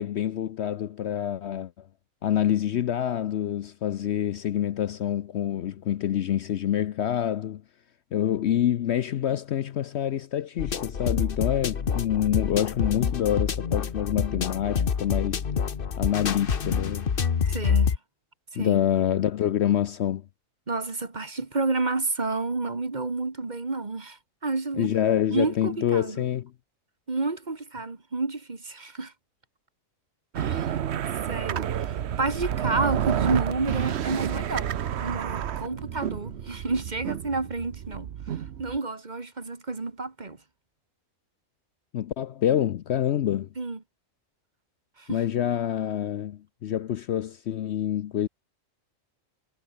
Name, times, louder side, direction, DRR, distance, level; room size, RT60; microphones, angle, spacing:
voice 1, 0.0-1.7 2.2-7.6 8.1-15.4 16.0-17.1 18.6-20.2 24.8-26.5 41.9-43.5 45.1-48.3, left 10 dB, 65° left, 0.8 m, -26 dB
sound 1, 10.6-18.0, left 6 dB, 45° left, 1.2 m, -27 dB
voice 2, 17.5-17.9 18.5-18.8 20.7-24.9 25.3-26.2 27.1-29.1 30.4-30.8 31.3-34.7 35.0-38.1 38.6-40.4 43.6-43.8 45.0-45.2, right 3 dB, 35° right, 1.8 m, -30 dB
sound 2, 30.3-38.8, right 9 dB, 60° right, 1.0 m, -30 dB
omnidirectional pair, 1.4 m